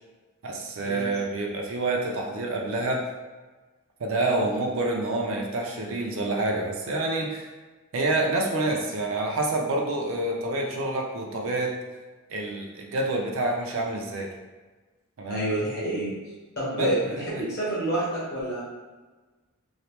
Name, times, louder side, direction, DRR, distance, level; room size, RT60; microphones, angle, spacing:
voice 1, 0.4-3.0 4.0-7.5 7.9-11.7 12.3-14.3 15.2-15.4 16.7-17.4, right 2 dB, 65° right, 0 dB, 0.4 m, -27 dB
voice 2, 15.3-16.1 16.6-18.6, right 1 dB, 50° left, -8 dB, 1.2 m, -28 dB
3.0 x 2.0 x 2.9 m, 1.3 s
head